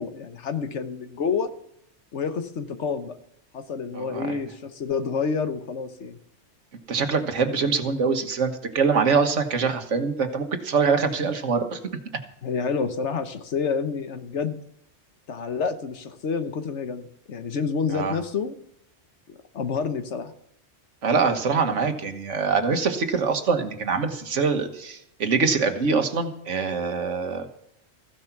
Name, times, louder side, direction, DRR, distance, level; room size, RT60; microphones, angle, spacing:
voice 1, 0.0-1.5 2.1-3.2 3.5-6.2 12.4-14.6 15.3-18.6 19.5-20.3, left 5 dB, 70° left, 9 dB, 1.3 m, -28 dB
voice 2, 3.9-4.4 6.9-11.8 17.9-18.1 21.0-27.5, right 5 dB, 80° right, 6 dB, 1.7 m, -24 dB
15.0 x 9.8 x 5.9 m, 0.76 s
omnidirectional pair, 1.2 m